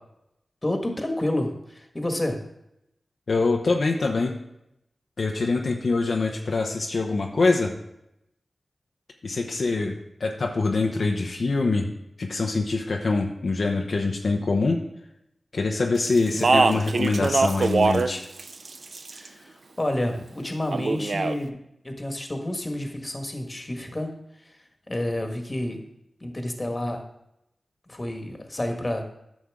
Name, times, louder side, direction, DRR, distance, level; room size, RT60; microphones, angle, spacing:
voice 1, 0.6-2.4 19.1-21.6 21.8-24.1 24.4-24.5 24.9-25.8 26.2-27.0 27.9-29.0, left 1 dB, 30° left, 3 dB, 1.5 m, -29 dB
voice 2, 3.3-4.3 5.2-7.7 9.2-9.9 10.2-11.9 12.2-14.8 15.5-18.2, left 3 dB, 70° left, 2 dB, 0.7 m, -24 dB
Speech, 16.2-18.1 18.4-19.3 20.7-21.4, right 3 dB, 70° right, 0.4 m, -22 dB
9.6 x 6.2 x 3.6 m, 0.82 s
cardioid pair, 50°, 0 cm